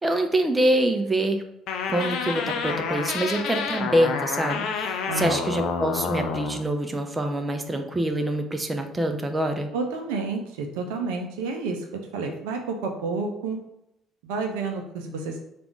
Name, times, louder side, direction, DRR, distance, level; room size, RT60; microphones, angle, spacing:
voice 1, 0.0-1.4 1.9-9.7, right 1 dB, 20° right, 5 dB, 0.6 m, -25 dB
sound 1, 1.7-6.6, left 6 dB, 60° left, 0.5 m, -29 dB
voice 2, 5.1-5.4 9.7-11.8 12.1-13.6 14.2-15.4, right 4 dB, 70° right, 3 dB, 0.5 m, -30 dB
3.4 x 2.5 x 4.5 m, 0.82 s
figure-of-eight pair, 50°, 0 cm